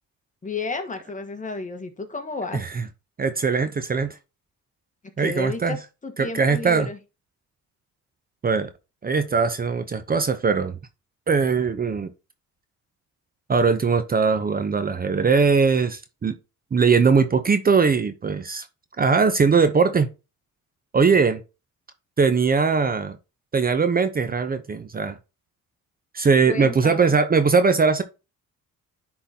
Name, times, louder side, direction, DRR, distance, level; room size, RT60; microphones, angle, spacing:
voice 1, 0.4-2.6 5.0-7.0 26.5-27.2, left 3 dB, 25° left, 1.4 m, -32 dB
voice 2, 2.5-2.8 3.2-4.2 5.2-5.8 6.2-6.9 8.4-8.7 9.0-10.8 11.3-12.1 13.5-16.3 16.7-18.7 19.0-20.1 20.9-21.4 22.2-23.2 23.5-25.2 26.1-28.0, right 5 dB, 30° right, 0.7 m, -20 dB
10.0 x 3.9 x 2.8 m
cardioid pair, 90°, 30 cm